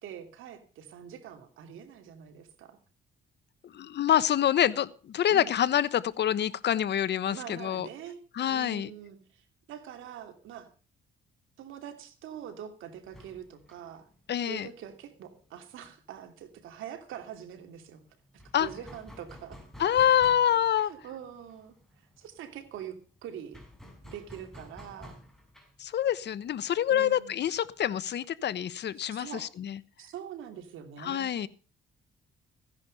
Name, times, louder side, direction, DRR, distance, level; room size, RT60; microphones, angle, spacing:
voice 1, 0.0-2.8 5.3-5.6 7.3-10.7 11.6-14.1 14.5-18.0 18.3-19.6 20.9-21.7 22.2-23.6 24.0-25.2 26.9-27.4 29.1-29.5 30.0-31.5, right 9 dB, 85° right, 7 dB, 2.9 m, -44 dB
voice 2, 3.6-7.9 8.3-8.9 14.3-14.7 18.5-18.7 19.8-20.9 25.8-29.8 31.0-31.5, left 10 dB, 60° left, 16 dB, 1.1 m, -26 dB
sound 1, 13.0-16.5 16.7-16.8 17.1-28.1, left 1 dB, ahead, 5.3 m, -52 dB
15.5 x 10.5 x 5.3 m, 0.38 s
cardioid pair, 90°, 20 cm